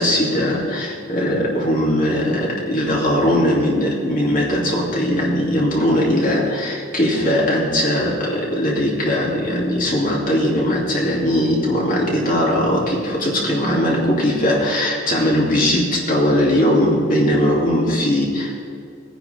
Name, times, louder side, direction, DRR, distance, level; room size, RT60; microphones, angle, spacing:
voice 1, 0.0-18.6, equal, 40° left, -3 dB, 2.7 m, -19 dB
19.0 x 10.0 x 3.4 m, 2.3 s
head